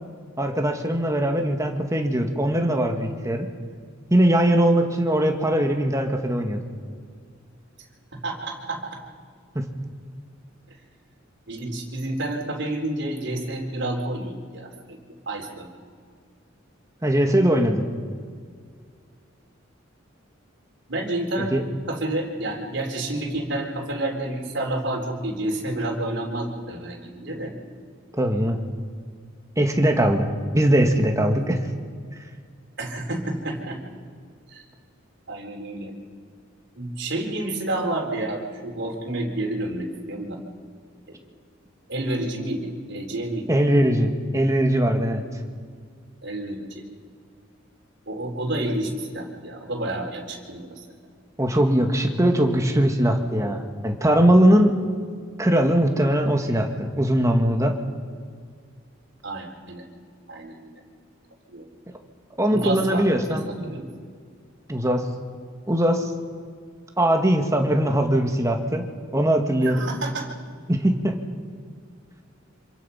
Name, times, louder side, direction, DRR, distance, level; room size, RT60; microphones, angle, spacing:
voice 1, 0.4-3.5 4.1-6.6 9.6-9.7 17.0-17.9 21.4-21.6 28.1-28.6 29.6-31.6 43.5-45.2 51.4-54.8 55.4-57.8 62.4-63.5 64.7-65.0 65.7-66.1 67.0-68.8 69.1-69.9 70.7-71.2, right 1 dB, 15° right, 4 dB, 1.9 m, -20 dB
voice 2, 8.2-9.0 11.5-15.0 15.3-15.7 20.9-21.5 21.9-27.5 32.8-33.8 34.5-34.6 35.3-35.9 36.8-40.4 41.9-43.5 46.2-46.8 48.1-50.8 59.2-59.8 60.3-60.8 61.5-61.7 62.5-63.9 69.6-70.3, right 1 dB, 60° right, 0 dB, 4.1 m, -29 dB
27.0 x 25.0 x 5.8 m, 2.1 s
head